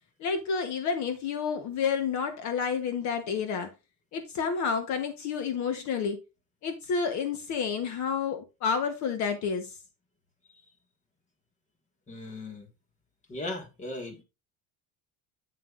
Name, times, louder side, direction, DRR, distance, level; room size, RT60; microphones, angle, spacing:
voice 1, 0.2-3.7 4.1-6.2 6.6-9.8, left 6 dB, 50° left, 1.2 m, -30 dB
voice 2, 12.1-12.7 13.3-14.2, left 2 dB, 20° left, 1.7 m, -37 dB
9.0 x 7.6 x 2.5 m
cardioid pair, 170°, 36 cm